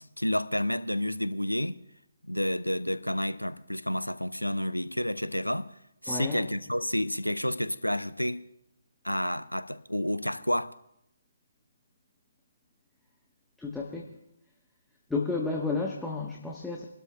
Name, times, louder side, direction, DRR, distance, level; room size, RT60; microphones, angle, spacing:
voice 1, 0.0-1.8 2.2-5.7 6.0-8.4 9.0-10.7, left 1 dB, 90° left, 0.6 m, -30 dB
voice 2, 6.1-6.4 13.6-14.1 15.1-16.8, left 3 dB, 5° left, 1.1 m, -32 dB
28.5 x 12.5 x 2.2 m
figure-of-eight pair, 140°, 0 cm